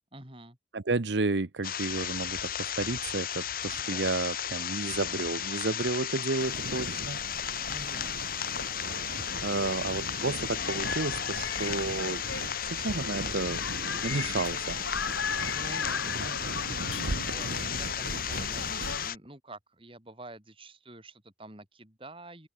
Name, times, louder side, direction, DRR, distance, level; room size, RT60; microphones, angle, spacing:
voice 1, 0.1-0.6 3.7-4.2 7.7-8.2 9.5-9.9 15.5-22.5, right 1 dB, 30° right, 5.1 m, -48 dB
voice 2, 0.7-7.2 9.4-12.2 12.7-13.6 14.0-14.8, right 3 dB, 70° right, 0.9 m, -31 dB
sound 1, 1.6-19.2, left 9 dB, 50° left, 1.6 m, -34 dB
sound 2, 6.4-19.0, right 2 dB, 90° right, 1.3 m, -40 dB
sound 3, 8.4-19.1, left 5 dB, 80° left, 2.0 m, -38 dB
open air
head